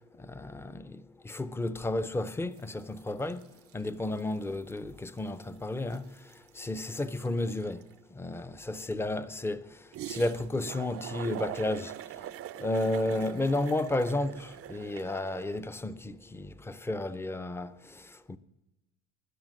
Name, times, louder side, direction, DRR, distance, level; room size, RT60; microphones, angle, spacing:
voice 1, 0.2-3.5 3.7-6.1 6.5-7.8 8.1-9.7 10.1-11.9 12.6-18.0 18.3-18.4, left 2 dB, 10° left, 0.5 m, -32 dB
sound 1, 2.6-2.8 3.1-4.3 4.7-4.8 5.1-7.9 9.9-15.6, right 13 dB, 45° right, 0.5 m, -43 dB
20.5 x 10.0 x 6.4 m
cardioid pair, 155°, 32 cm